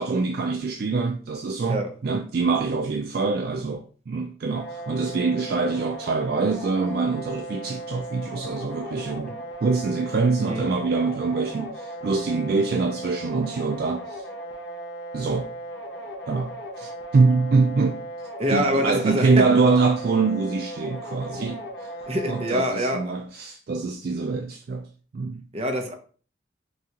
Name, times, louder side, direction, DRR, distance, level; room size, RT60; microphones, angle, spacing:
voice 1, 0.0-9.3 9.6-14.2 15.1-15.5 16.3-18.0 18.5-24.9 25.1-25.4, right 4 dB, 50° right, 0.3 m, -24 dB
sound 1, 4.5-22.5, right 1 dB, 70° left, 0.8 m, -37 dB
voice 2, 18.4-19.4 22.1-23.1 25.5-25.9, equal, 30° right, 0.7 m, -25 dB
5.9 x 2.4 x 2.9 m
head